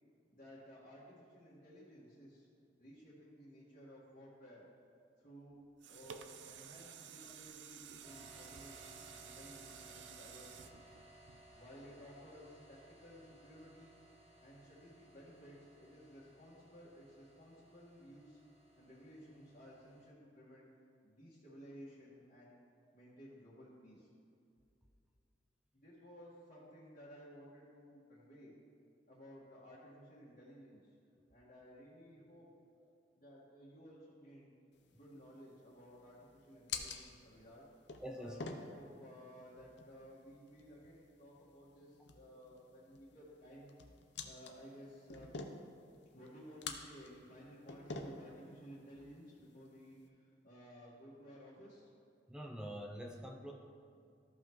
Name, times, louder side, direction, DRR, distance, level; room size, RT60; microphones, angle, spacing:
voice 1, 0.3-2.5 2.8-4.7 5.2-5.6 5.9-10.9 11.5-14.0 14.4-18.4 18.8-20.7 21.0-22.6 22.9-24.1 25.7-28.5 29.1-31.0 31.3-32.5 33.1-34.5 34.9-37.6 38.1-43.7 44.2-45.3 46.1-51.9, equal, 45° left, -10 dB, 1.7 m, -56 dB
sound 1, 5.5-11.8 12.3-12.4, right 7 dB, 85° right, 0.4 m, -53 dB
sound 2, 8.0-20.1, right 1 dB, 35° right, 1.7 m, -61 dB
sound 3, 34.7-50.1, left 4 dB, 70° left, 0.7 m, -50 dB
voice 2, 38.0-38.4 52.3-53.5, equal, 5° right, 0 dB, 0.5 m, -45 dB
14.0 x 5.5 x 3.1 m, 2.4 s
head